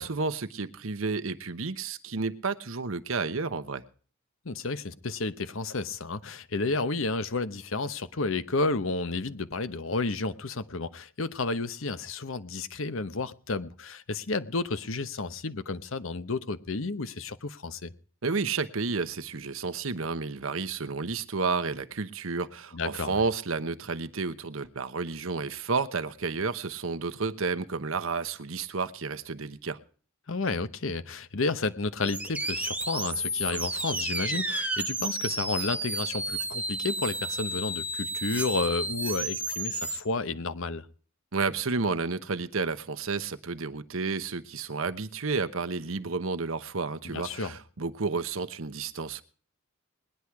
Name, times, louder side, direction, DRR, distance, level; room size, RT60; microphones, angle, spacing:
voice 1, 0.0-3.8 18.2-29.8 41.3-49.2, right 4 dB, 65° right, 1.0 m, -31 dB
voice 2, 4.4-17.9 22.7-23.2 30.3-40.9 47.1-47.5, left 3 dB, 65° left, 0.9 m, -31 dB
sound 1, 32.0-40.0, right 2 dB, 5° right, 1.1 m, -32 dB
20.0 x 10.0 x 4.7 m
head